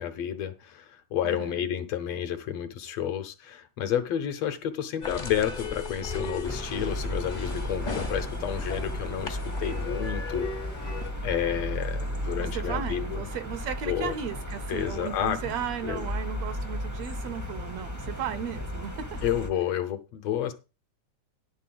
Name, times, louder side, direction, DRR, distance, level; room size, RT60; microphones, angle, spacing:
voice 1, 0.0-10.5 10.8-10.9 11.2-13.2 13.9-14.2 14.7-15.5 15.8-16.1 19.2-20.5, left 10 dB, 70° left, 1.7 m, -30 dB
voice 2, 1.2-1.6 12.4-19.2, right 9 dB, 75° right, 1.7 m, -35 dB
sound 1, 5.0-11.1, left 3 dB, 50° left, 0.5 m, -37 dB
sound 2, 6.4-19.5, equal, 20° right, 0.4 m, -34 dB
11.0 x 4.0 x 7.6 m
omnidirectional pair, 3.3 m